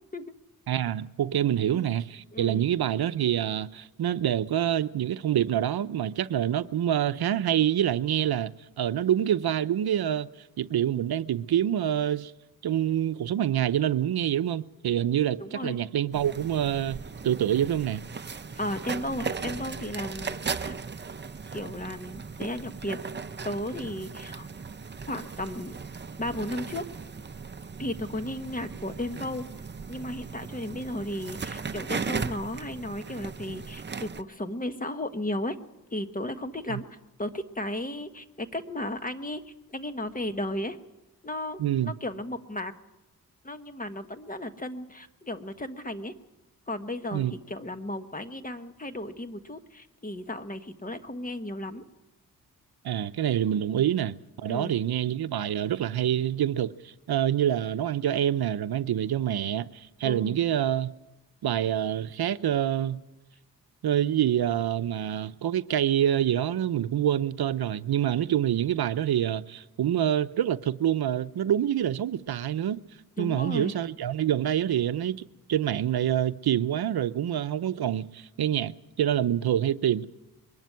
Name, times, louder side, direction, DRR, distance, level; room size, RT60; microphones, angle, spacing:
voice 1, 0.7-8.5 8.8-10.3 10.6-12.3 12.6-18.0 36.7-36.8 41.6-41.9 47.1-47.3 52.8-60.9 61.4-63.0 63.8-72.8 73.2-80.1, right 10 dB, 75° right, 0.7 m, -26 dB
voice 2, 2.3-2.6 15.4-15.8 18.5-20.8 21.5-23.0 23.4-24.5 25.1-25.8 26.2-26.8 27.8-29.5 29.9-35.6 35.9-36.9 37.2-39.4 39.7-40.8 41.2-42.7 43.4-46.1 46.7-51.8 53.8-53.9 54.5-54.8 60.0-60.4 73.2-73.7, left 1 dB, 20° left, 1.3 m, -34 dB
sound 1, 16.1-34.2, right 5 dB, 30° right, 0.7 m, -37 dB
22.5 x 12.0 x 9.4 m
cardioid pair, 85°, 38 cm